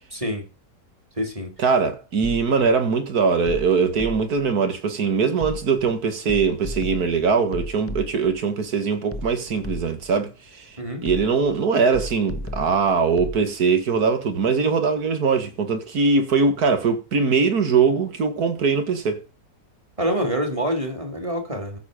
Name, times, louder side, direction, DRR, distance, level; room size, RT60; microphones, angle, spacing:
voice 1, 0.1-0.5 1.2-1.5 10.8-11.1 20.0-21.8, equal, 20° right, 2.7 m, -26 dB
voice 2, 1.6-19.2, right 5 dB, 65° right, 2.2 m, -21 dB
sound 1, 2.2-2.7 3.5-4.5 5.4-5.9 6.3-8.4 9.1-10.2 11.0-11.6 11.9-13.4, left 1 dB, 15° left, 0.6 m, -34 dB
14.5 x 6.9 x 5.0 m
omnidirectional pair, 1.8 m